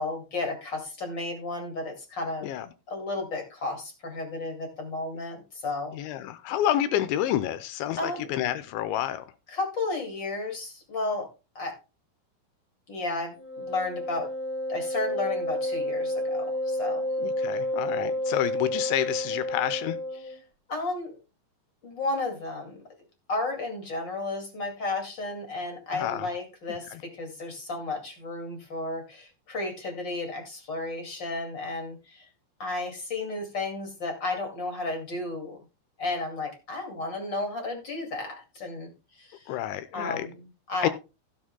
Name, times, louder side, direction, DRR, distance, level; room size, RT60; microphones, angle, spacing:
voice 1, 0.0-2.5 2.9-6.0 7.9-8.3 9.5-11.3 11.5-11.7 12.9-14.3 14.7-17.0 20.7-21.2 21.8-22.8 23.3-32.3 32.6-35.6 36.0-39.5 39.9-40.9, left 2 dB, 40° left, 1.7 m, -33 dB
voice 2, 5.9-9.3 17.2-20.0 25.9-26.3 26.9-27.0 39.5-40.3 40.8-40.9, left 12 dB, 80° left, 2.8 m, -29 dB
Wind instrument woodwind instrument, 13.3-20.4, left 1 dB, 5° left, 2.8 m, -30 dB
16.0 x 8.8 x 2.2 m
omnidirectional pair, 5.7 m